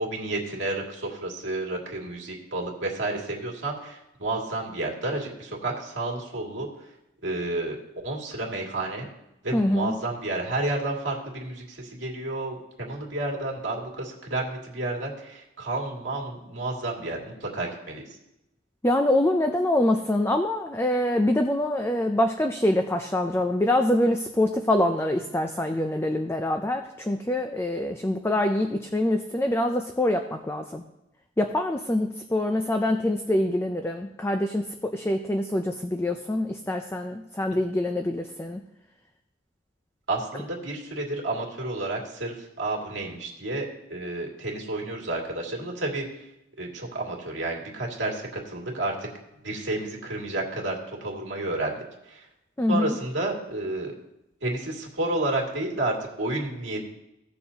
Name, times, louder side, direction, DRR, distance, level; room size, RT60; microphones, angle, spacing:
voice 1, 0.0-6.7 7.2-7.8 8.0-9.1 9.4-18.1 40.1-46.2 46.6-49.1 49.4-52.3 52.7-53.9 54.4-56.8, right 2 dB, 65° right, -2 dB, 2.4 m, -31 dB
voice 2, 9.5-10.0 18.8-30.8 31.4-38.6 52.6-53.0, left 1 dB, 15° left, 5 dB, 0.4 m, -25 dB
16.5 x 6.8 x 2.9 m, 0.90 s
head